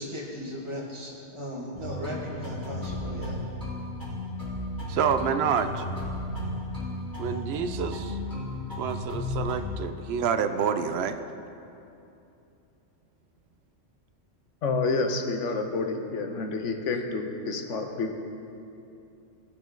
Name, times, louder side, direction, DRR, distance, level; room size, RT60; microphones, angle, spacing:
voice 1, 0.0-3.4, equal, 25° right, -4 dB, 1.6 m, -36 dB
sound 1, 1.7-9.6, left 1 dB, 15° left, 2.8 m, -34 dB
voice 2, 4.9-5.8 7.2-8.2 8.8-11.2, right 7 dB, 65° right, 9 dB, 0.7 m, -28 dB
voice 3, 14.6-18.2, left 3 dB, 75° left, 4 dB, 1.2 m, -29 dB
16.0 x 6.2 x 3.8 m, 2.7 s
omnidirectional pair, 1.3 m